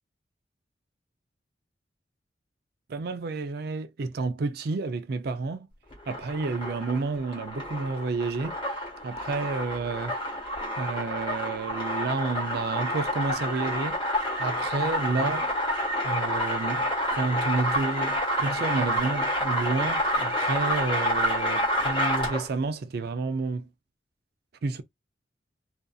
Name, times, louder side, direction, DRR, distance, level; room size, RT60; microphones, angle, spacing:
voice 1, 2.9-5.7 6.1-8.6 9.0-10.2 10.8-14.0 14.4-15.5 16.0-23.7 24.6-24.8, right 3 dB, 55° right, 0.4 m, -30 dB
sound 1, 5.9-22.6, equal, 25° left, 1.3 m, -28 dB
2.5 x 2.4 x 2.3 m
head